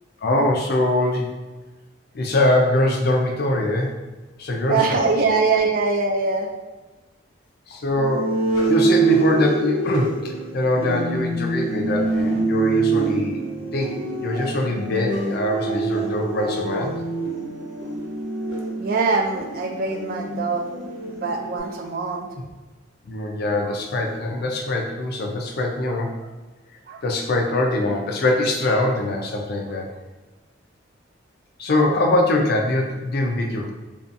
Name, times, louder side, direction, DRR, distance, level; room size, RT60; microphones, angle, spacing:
voice 1, 0.2-1.3 2.1-4.0 4.4-5.1 7.7-8.4 8.7-13.4 13.7-16.9 23.1-26.2 27.0-29.9 31.6-33.7, left 1 dB, 55° left, 1 dB, 0.4 m, -23 dB
voice 2, 4.7-6.5 18.8-20.7 21.1-22.3 23.6-23.7 26.9-27.0, right 4 dB, 50° right, 3 dB, 0.3 m, -23 dB
sound 1, 7.9-21.6, right 3 dB, 70° left, 1.1 m, -25 dB
2.6 x 2.3 x 2.5 m, 1.2 s
head